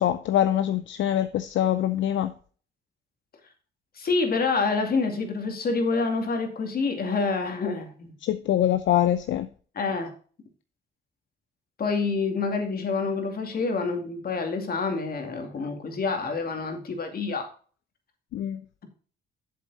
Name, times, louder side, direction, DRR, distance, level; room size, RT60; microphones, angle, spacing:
voice 1, 0.0-2.3 8.2-9.5 18.3-18.6, left 11 dB, 70° left, 0.6 m, -24 dB
voice 2, 4.0-8.1 9.7-10.1 11.8-17.4, left 4 dB, 50° left, 2.5 m, -27 dB
7.6 x 7.5 x 4.1 m
cardioid pair, 90°, 20 cm